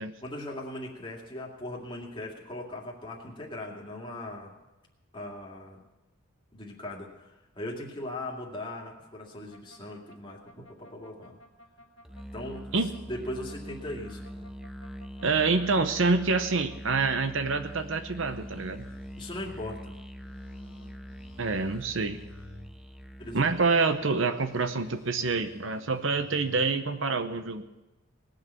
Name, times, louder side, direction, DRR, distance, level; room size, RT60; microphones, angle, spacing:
voice 1, 0.2-4.5 5.1-5.8 6.5-11.4 12.3-12.6 13.1-14.5 19.1-20.0 23.2-23.5, left 1 dB, 25° left, -1 dB, 2.4 m, -39 dB
sound 1, 9.5-17.2 17.5-19.7 20.2-22.7 23.2-26.6, left 1 dB, 60° left, 1.7 m, -54 dB
Musical instrument, 12.0-23.8, equal, ahead, 0.5 m, -43 dB
voice 2, 15.2-18.9 21.4-22.2 23.3-27.7, right 4 dB, 65° right, 10 dB, 0.8 m, -27 dB
19.5 x 6.6 x 8.3 m, 1.0 s
head